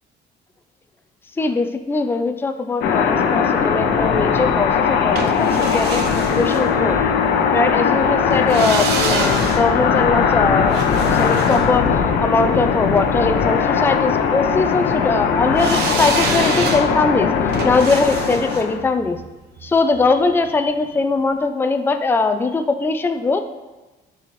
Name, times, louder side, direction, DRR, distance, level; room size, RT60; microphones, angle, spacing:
voice 1, 1.4-7.0 7.5-10.8 11.1-11.9 12.2-17.3 17.6-19.2 19.6-23.4, left 3 dB, 15° left, 7 dB, 0.4 m, -20 dB
sound 1, 2.8-18.8, left 6 dB, 80° left, 0.7 m, -19 dB
sound 2, 5.2-7.3 8.3-12.6 15.6-20.6 20.9-21.0, right 6 dB, 75° right, 0.8 m, -29 dB
10.5 x 4.2 x 3.1 m, 1.1 s
cardioid pair, 110°, 17 cm